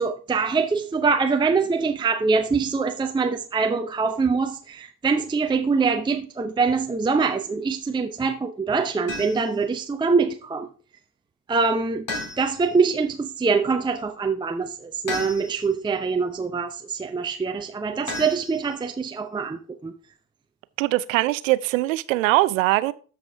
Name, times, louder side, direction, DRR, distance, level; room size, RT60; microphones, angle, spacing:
voice 1, 0.0-10.7 11.5-12.1 12.4-19.9, right 4 dB, 10° right, 0.7 m, -24 dB
sound 1, 9.1-9.6 12.1-12.8 15.1-15.8 18.1-19.0, left 2 dB, 55° left, 4.8 m, -34 dB
voice 2, 20.8-22.9, right 18 dB, 70° right, 0.6 m, -21 dB
13.0 x 4.9 x 3.5 m
figure-of-eight pair, 50°, 42 cm